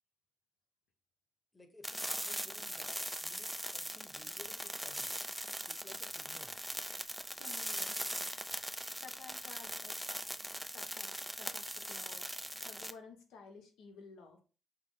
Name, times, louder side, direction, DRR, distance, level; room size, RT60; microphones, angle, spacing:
voice 1, 1.5-5.1 5.7-6.5, left 2 dB, 15° left, 7 dB, 1.0 m, -57 dB
sound 1, 1.8-12.9, equal, ahead, 0.3 m, -40 dB
voice 2, 7.3-8.5 9.0-10.3 10.7-12.3 12.6-14.4, left 4 dB, 85° left, 4 dB, 1.0 m, -54 dB
5.7 x 2.1 x 3.8 m, 0.36 s
cardioid pair, 90°, 0 cm